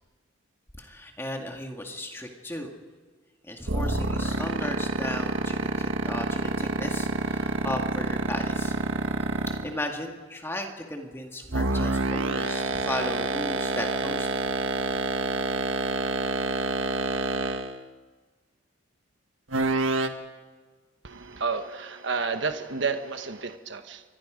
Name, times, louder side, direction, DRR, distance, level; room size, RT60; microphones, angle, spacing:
voice 1, 0.8-2.7 3.4-9.2 9.5-14.4, left 1 dB, 10° left, 2 dB, 2.1 m, -36 dB
sound 1, 3.7-9.8 11.5-17.8 19.5-20.1, right 2 dB, 85° right, 1.6 m, -27 dB
voice 2, 21.0-24.0, right 4 dB, 65° right, 7 dB, 1.2 m, -31 dB
29.0 x 24.5 x 5.2 m, 1.4 s
head